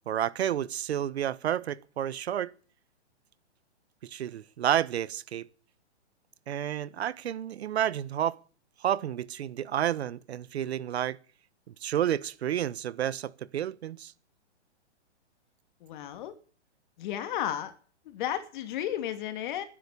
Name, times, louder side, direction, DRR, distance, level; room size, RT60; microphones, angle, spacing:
voice 1, 0.1-2.5 4.0-5.5 6.5-8.4 8.8-11.2 11.8-14.1, right 10 dB, 65° right, 1.2 m, -30 dB
voice 2, 15.8-16.3 17.0-17.7 18.0-19.6, left 11 dB, 45° left, 2.8 m, -33 dB
19.5 x 10.5 x 6.8 m
hypercardioid pair, 155°, 35 cm